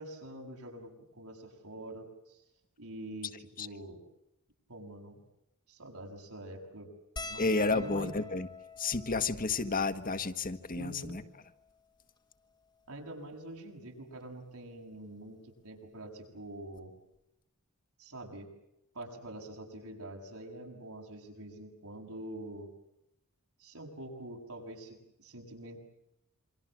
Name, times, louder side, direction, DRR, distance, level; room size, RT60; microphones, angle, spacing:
voice 1, 0.0-2.4 2.8-4.0 4.7-5.2 5.7-6.9 7.3-8.1 10.8-11.2 12.9-17.0 18.0-18.5 18.9-22.7 23.6-25.8, right 1 dB, 80° right, 2 dB, 7.5 m, -45 dB
sound 1, 7.2-11.8 12.5-12.6 12.8-13.0 14.2-14.5 15.9-16.0 16.3-16.5, left 3 dB, 20° left, 1.3 m, -48 dB
voice 2, 7.4-8.5 8.8-11.2, left 3 dB, 40° left, 9 dB, 1.5 m, -31 dB
27.5 x 25.5 x 7.6 m, 0.85 s
head